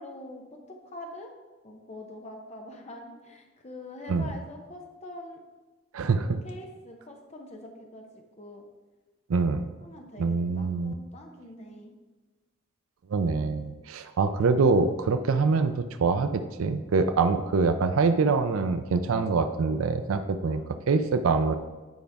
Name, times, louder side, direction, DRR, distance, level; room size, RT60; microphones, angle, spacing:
voice 1, 0.0-1.3 1.6-5.4 6.3-8.1 8.4-8.6 9.8-12.0 20.4-20.7, left 1 dB, 30° left, 2 dB, 0.8 m, -44 dB
voice 2, 5.9-6.4 9.3-9.7 10.2-10.9 13.1-20.6 20.9-21.5, right 4 dB, 85° right, 9 dB, 0.4 m, -25 dB
9.3 x 5.1 x 3.5 m, 1.3 s
head